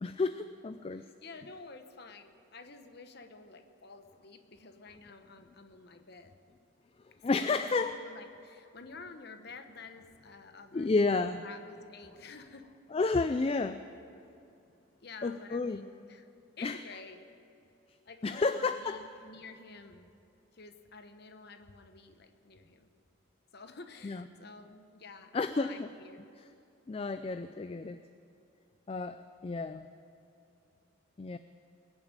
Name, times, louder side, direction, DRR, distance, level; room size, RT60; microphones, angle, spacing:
voice 1, 0.0-1.1 7.2-8.0 10.7-11.4 12.9-13.8 15.2-15.8 16.6-16.8 18.2-19.0 24.0-24.2 25.3-25.9 26.9-28.0 28.9-29.9 31.2-31.4, left 3 dB, 25° left, 11 dB, 0.3 m, -31 dB
voice 2, 0.9-6.3 7.3-12.7 15.0-16.3 16.6-17.3 18.0-20.1 20.5-22.9 23.5-26.3, left 4 dB, 50° left, 7 dB, 1.0 m, -50 dB
21.0 x 7.2 x 8.8 m, 2.7 s
head